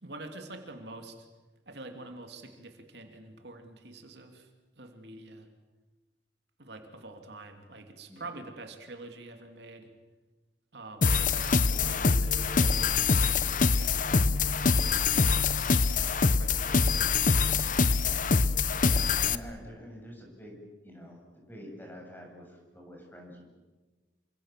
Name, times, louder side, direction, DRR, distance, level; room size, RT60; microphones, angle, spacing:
voice 1, 0.0-1.3 1.7-4.5 4.8-5.5 6.6-9.9 10.7-12.9 13.4-14.2 14.9-16.8 17.4-18.2, right 2 dB, 65° right, 5 dB, 2.9 m, -46 dB
sound 1, 11.0-19.4, left 4 dB, 45° left, 0.8 m, -25 dB
voice 2, 18.8-20.6 20.8-23.4, equal, 10° left, 0 dB, 7.9 m, -47 dB
28.0 x 26.0 x 7.6 m, 1.2 s
head